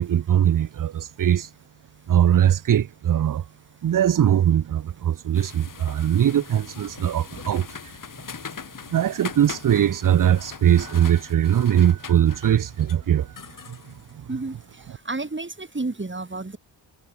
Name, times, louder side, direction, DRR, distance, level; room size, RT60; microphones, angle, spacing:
voice 1, 0.0-1.5 2.1-3.5 3.8-7.9 8.5-8.6 8.9-14.3, right 10 dB, 40° right, 0.7 m, -21 dB
sound 1, 5.3-14.9, left 6 dB, 40° left, 1.8 m, -41 dB
voice 2, 15.0-16.6, right 3 dB, 25° right, 4.7 m, -30 dB
cardioid pair, 60°, 48 cm